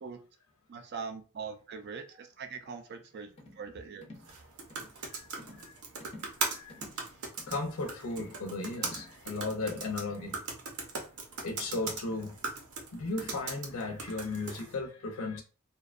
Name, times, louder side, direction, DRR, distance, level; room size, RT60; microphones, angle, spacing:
voice 1, 0.7-4.1, right 5 dB, 50° right, 0.4 m, -42 dB
sound 1, 3.4-3.6 4.0-4.3 4.7-4.9 5.4-5.7 6.0-6.4 6.7-7.0 7.4-7.7 8.1-8.4 8.8-9.1 9.6-9.9, left 1 dB, 25° left, 0.4 m, -50 dB
sound 2, 4.2-14.7, right 4 dB, 85° right, 0.7 m, -40 dB
voice 2, 6.4-6.8 7.5-10.4 11.4-12.4 12.9-15.4, left 3 dB, 75° left, 0.6 m, -35 dB
2.6 x 2.2 x 2.4 m
head